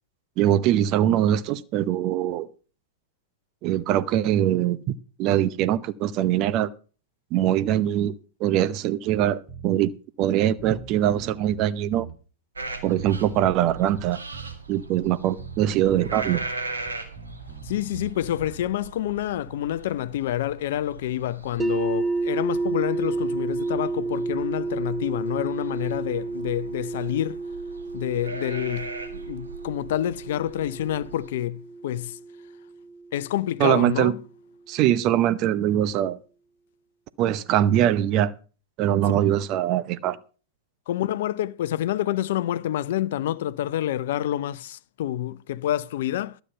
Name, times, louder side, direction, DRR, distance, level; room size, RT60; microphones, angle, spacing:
voice 1, 0.4-2.5 3.6-6.7 7.3-8.1 8.4-9.9 10.2-12.1 12.8-14.2 14.7-16.4 33.6-34.1 34.7-36.2 37.2-38.3 38.8-40.2, right 12 dB, 40° right, 0.7 m, -22 dB
Bass guitar, 9.1-9.7 10.2-10.3 10.6-12.2 13.0-14.6 15.4-16.5 16.8-18.7, right 5 dB, 25° right, 2.1 m, -42 dB
sound 1, 12.5-31.3, right 3 dB, 85° right, 2.1 m, -40 dB
voice 2, 17.6-27.4 27.9-32.2 33.1-34.2 40.9-46.4, left 12 dB, 60° left, 0.6 m, -28 dB
sound 2, 21.6-33.5, right 3 dB, 5° right, 0.5 m, -31 dB
12.5 x 9.1 x 5.5 m
figure-of-eight pair, 100°, 0 cm